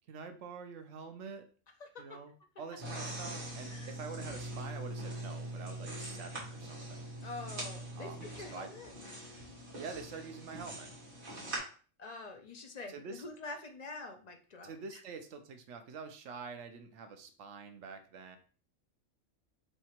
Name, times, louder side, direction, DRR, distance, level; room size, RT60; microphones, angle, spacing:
voice 1, 0.1-1.5 2.0-2.3 2.6-7.0 8.0-8.7 9.8-10.9 12.9-13.2 14.6-18.4, right 5 dB, 75° right, 7 dB, 1.0 m, -46 dB
voice 2, 1.8-2.2 2.9-3.0 3.6-3.9 7.2-9.3 12.0-15.0, left 3 dB, 50° left, 4 dB, 0.5 m, -46 dB
sound 1, 2.8-11.6, right 1 dB, 45° right, 1.5 m, -42 dB
3.3 x 2.8 x 4.3 m, 0.39 s
omnidirectional pair, 1.3 m